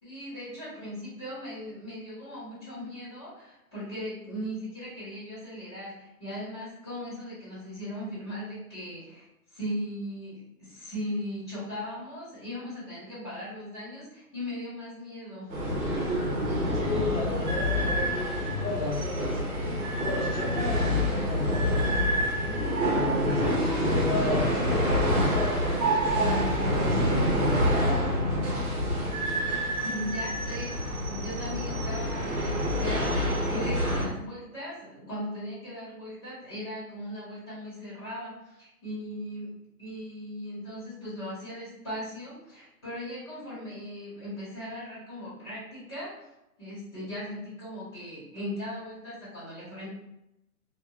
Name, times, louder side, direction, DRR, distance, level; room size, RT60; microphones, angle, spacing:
voice 1, 0.0-9.2 9.5-15.5 29.8-39.5 39.8-46.3 46.6-49.9, equal, 15° left, -13 dB, 1.1 m, -38 dB
sound 1, 15.5-34.1, equal, 65° right, 1.0 m, -27 dB
voice 2, 16.7-19.4 20.0-28.7, left 2 dB, 55° left, -6 dB, 0.5 m, -34 dB
2.5 x 2.3 x 2.4 m, 0.88 s
hypercardioid pair, 180°, 47 cm